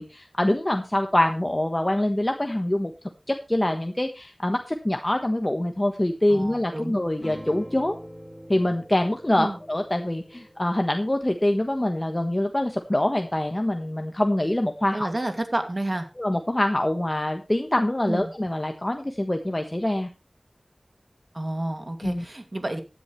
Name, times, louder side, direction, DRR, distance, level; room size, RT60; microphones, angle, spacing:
voice 1, 0.0-2.9 3.3-8.0 8.5-15.1 16.2-20.1 22.0-22.2, left 1 dB, 30° left, 5 dB, 1.3 m, -25 dB
voice 2, 6.3-7.0 9.4-9.6 14.9-16.1 18.1-18.3 21.3-22.8, right 1 dB, 45° right, 7 dB, 2.5 m, -30 dB
sound 1, 7.2-12.1, equal, ahead, 2.7 m, -45 dB
15.5 x 10.5 x 3.3 m, 0.28 s
wide cardioid pair, 50°, 0 cm